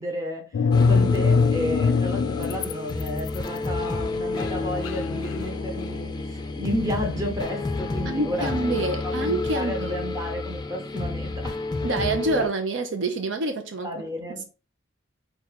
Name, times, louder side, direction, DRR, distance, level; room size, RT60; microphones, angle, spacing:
voice 1, 0.0-11.6 13.8-14.5, equal, 20° right, 1.0 m, -32 dB
sound 1, 0.5-2.7 3.0-6.4, left 4 dB, 90° left, 0.3 m, -23 dB
sound 2, 0.7-12.5, left 3 dB, 20° left, 0.4 m, -30 dB
voice 2, 8.0-10.0 11.8-13.9, right 2 dB, 70° right, 0.6 m, -27 dB
4.3 x 2.4 x 4.0 m
head